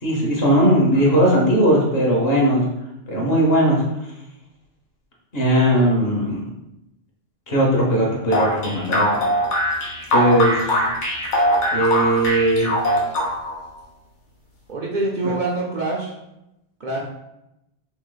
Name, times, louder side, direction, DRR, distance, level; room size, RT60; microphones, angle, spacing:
voice 1, 0.0-2.6 3.1-3.8 5.3-6.4 7.5-9.3 10.1-10.8 11.7-12.7 15.2-15.3, right 1 dB, 60° left, -2 dB, 1.2 m, -18 dB
sound 1, 8.3-13.6, equal, 90° left, 1.2 m, -21 dB
voice 2, 14.7-16.1 16.8-17.0, right 2 dB, 55° right, -3 dB, 0.6 m, -25 dB
3.1 x 2.9 x 3.8 m, 0.89 s
omnidirectional pair, 1.2 m